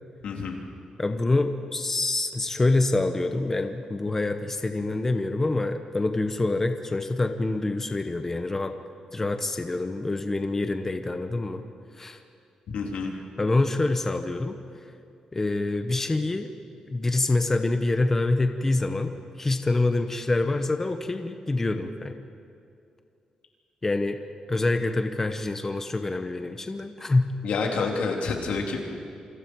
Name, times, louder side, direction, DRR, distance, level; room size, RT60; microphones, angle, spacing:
voice 1, 0.2-0.6 12.7-13.2 27.4-28.8, left 4 dB, 90° left, 0 dB, 3.4 m, -28 dB
voice 2, 1.0-8.7 9.1-11.6 12.0-12.2 13.4-14.6 15.3-16.5 16.9-22.2 23.8-24.2 24.5-27.3, left 2 dB, 20° left, 7 dB, 1.0 m, -26 dB
27.5 x 26.5 x 4.7 m, 2.5 s
wide cardioid pair, 155°, 2 cm